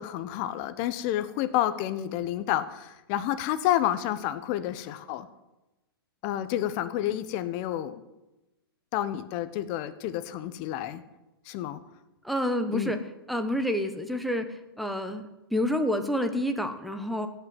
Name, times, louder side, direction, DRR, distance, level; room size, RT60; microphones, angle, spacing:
voice 1, 0.0-5.3 6.2-8.0 8.9-11.0 11.4-11.8 12.7-13.0, left 12 dB, 35° left, 12 dB, 1.1 m, -29 dB
voice 2, 12.2-13.0 13.3-14.4 14.8-15.2 15.5-17.3, equal, ahead, 6 dB, 1.1 m, -28 dB
16.5 x 5.8 x 9.6 m, 0.99 s
hypercardioid pair, 135°, 13 cm